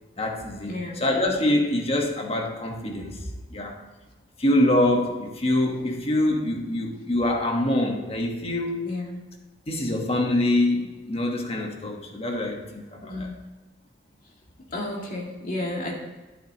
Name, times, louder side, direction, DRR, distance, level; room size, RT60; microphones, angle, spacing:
voice 1, 0.2-3.8 4.4-8.8 9.7-13.3, left 1 dB, 35° left, 1 dB, 1.3 m, -25 dB
voice 2, 0.7-1.0 8.8-9.2 13.1-13.3 14.7-15.9, left 2 dB, 50° left, -2 dB, 2.2 m, -32 dB
11.5 x 9.2 x 3.0 m, 1.2 s
head